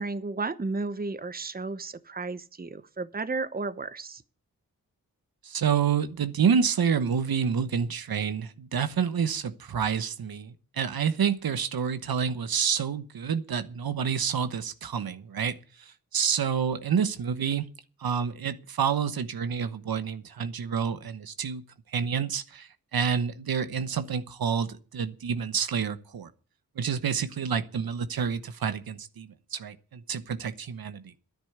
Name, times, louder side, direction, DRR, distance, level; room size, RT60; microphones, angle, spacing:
voice 1, 0.0-4.2, right 3 dB, 25° right, 0.9 m, -33 dB
voice 2, 5.4-15.6 16.1-17.7 18.0-21.6 21.9-26.3 26.8-31.1, right 7 dB, 75° right, 1.1 m, -28 dB
10.5 x 9.4 x 8.0 m
cardioid pair, 45°, 36 cm